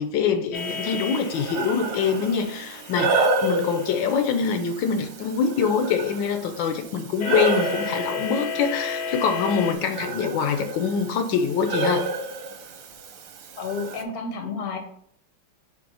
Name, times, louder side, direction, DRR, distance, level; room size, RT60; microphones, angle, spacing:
voice 1, 0.0-12.1, left 6 dB, 80° left, 7 dB, 1.4 m, -24 dB
sound 1, 0.5-4.2 7.2-9.7, left 5 dB, 65° left, 1.1 m, -33 dB
Breathing, 0.6-14.0, right 3 dB, 65° right, 1.2 m, -30 dB
voice 2, 13.6-14.8, left 4 dB, 40° left, 5 dB, 0.8 m, -31 dB
5.2 x 3.5 x 5.4 m, 0.64 s
omnidirectional pair, 2.1 m